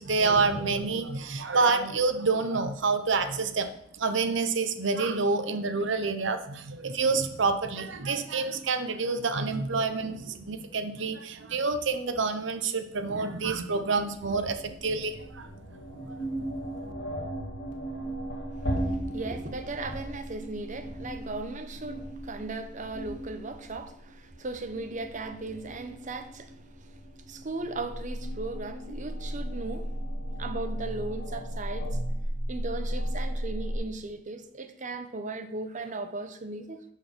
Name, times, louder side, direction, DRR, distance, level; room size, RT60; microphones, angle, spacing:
voice 1, 0.0-3.7 4.0-16.4 16.8-16.9, right 4 dB, 70° right, 0.8 m, -28 dB
sound 1, 14.2-33.8, right 1 dB, 65° left, 1.7 m, -36 dB
voice 2, 18.6-30.0 30.4-32.0 32.5-36.8, right 2 dB, 40° right, 0.8 m, -37 dB
11.5 x 4.6 x 5.3 m
head